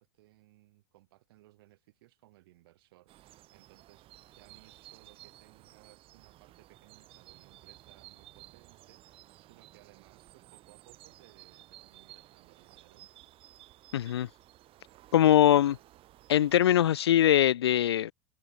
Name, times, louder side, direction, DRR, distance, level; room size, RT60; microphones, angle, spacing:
voice 1, 0.0-13.1, right 18 dB, 65° right, 4.8 m, -62 dB
sound 1, 3.1-16.9, right 15 dB, 45° right, 4.0 m, -55 dB
voice 2, 13.9-14.3 15.1-15.8 16.3-18.1, left 11 dB, 75° left, 0.4 m, -22 dB
figure-of-eight pair, 80°, 13 cm